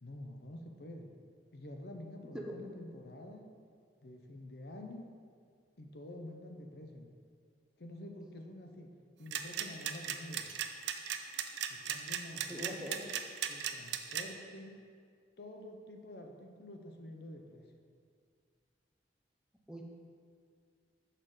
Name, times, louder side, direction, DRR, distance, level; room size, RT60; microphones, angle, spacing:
voice 1, 0.0-1.1 1.5-3.5 4.0-5.1 5.8-7.1 7.8-8.9 9.2-10.5 11.7-13.1 13.5-14.7 15.4-17.7, left 1 dB, 60° left, 3 dB, 0.7 m, -48 dB
voice 2, 2.3-2.7 12.5-13.0 19.7-19.8, equal, 5° right, 0 dB, 0.6 m, -43 dB
sound 1, 9.3-14.2, right 10 dB, 75° right, 0.5 m, -36 dB
6.6 x 5.7 x 4.8 m, 2.1 s
head